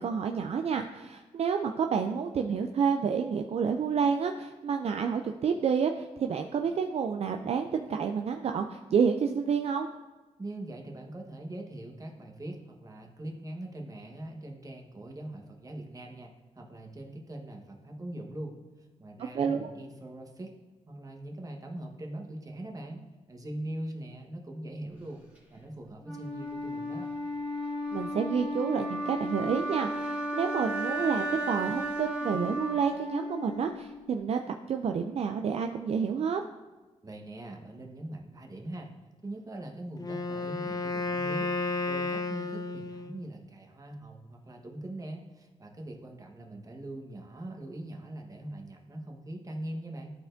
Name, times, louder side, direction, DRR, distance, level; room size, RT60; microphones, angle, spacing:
voice 1, 0.0-9.9 19.3-19.7 27.9-36.4, right 6 dB, 55° right, 5 dB, 0.4 m, -29 dB
voice 2, 10.4-18.6 19.0-20.5 20.9-23.0 23.3-25.2 25.5-27.1 37.0-38.9 39.2-41.5 41.8-50.1, right 1 dB, 30° right, 1 dB, 1.2 m, -42 dB
Wind instrument woodwind instrument, 26.0-34.1, equal, 10° right, 1.9 m, -34 dB
Wind instrument woodwind instrument 2, 40.0-43.3, left 3 dB, 30° left, 0.4 m, -32 dB
12.0 x 4.3 x 2.6 m, 1.2 s
cardioid pair, 85°, 12 cm